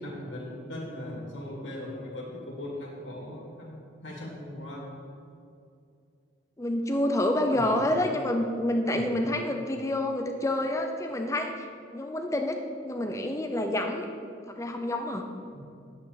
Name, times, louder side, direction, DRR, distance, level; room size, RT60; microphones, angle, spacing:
voice 1, 0.0-3.7 4.0-4.9 7.5-7.8 8.9-9.1 15.5-15.6, left 1 dB, 80° left, -3 dB, 2.5 m, -39 dB
voice 2, 6.6-14.1 14.5-15.3, left 1 dB, 15° left, 4 dB, 0.5 m, -28 dB
10.5 x 8.5 x 4.1 m, 2.5 s
head